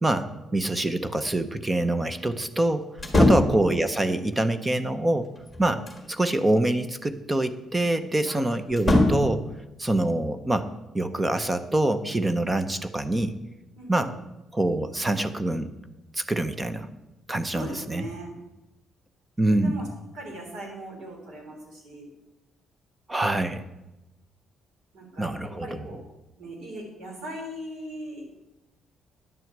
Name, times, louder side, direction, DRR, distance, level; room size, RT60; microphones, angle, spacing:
voice 1, 0.0-2.9 3.2-5.3 5.6-9.5 9.8-13.4 13.9-14.2 14.5-15.7 16.1-16.9 17.3-18.1 19.4-19.8 23.1-23.7 25.2-25.8, right 1 dB, 10° right, 11 dB, 0.6 m, -25 dB
sound 1, 3.0-3.6 5.3-6.1 8.7-9.4, left 1 dB, 10° left, 1.6 m, -21 dB
voice 2, 13.8-14.2 17.5-18.4 19.4-19.9 20.1-22.1 24.9-26.0 26.4-28.2, equal, 65° right, 0 dB, 3.7 m, -39 dB
10.5 x 6.3 x 7.9 m, 0.98 s
cardioid pair, 170°, 0 cm